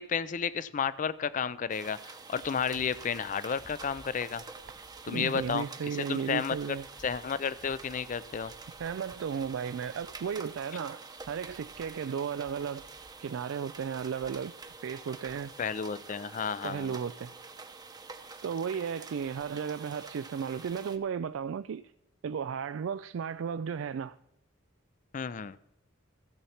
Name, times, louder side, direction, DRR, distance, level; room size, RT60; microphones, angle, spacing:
voice 1, 0.0-4.4 5.0-5.7 6.1-6.8 7.0-8.5 15.6-17.0 25.1-25.6, left 6 dB, 40° left, 0.4 m, -32 dB
sound 1, 1.7-21.0, right 4 dB, 20° right, 0.8 m, -47 dB
voice 2, 5.1-6.8 8.8-11.0 11.3-12.8 13.2-14.5 14.8-15.5 16.6-17.3 18.4-21.8 22.2-24.2, right 7 dB, 70° right, 0.3 m, -34 dB
15.5 x 7.0 x 4.3 m
head